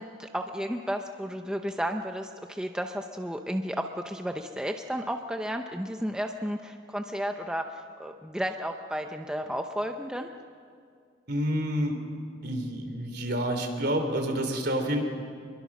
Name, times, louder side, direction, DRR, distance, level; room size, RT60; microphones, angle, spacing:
voice 1, 0.0-10.3, equal, 5° right, 4 dB, 0.7 m, -33 dB
voice 2, 11.3-11.9 12.4-15.0, equal, 55° right, 4 dB, 3.3 m, -28 dB
25.5 x 22.5 x 6.1 m, 2.2 s
head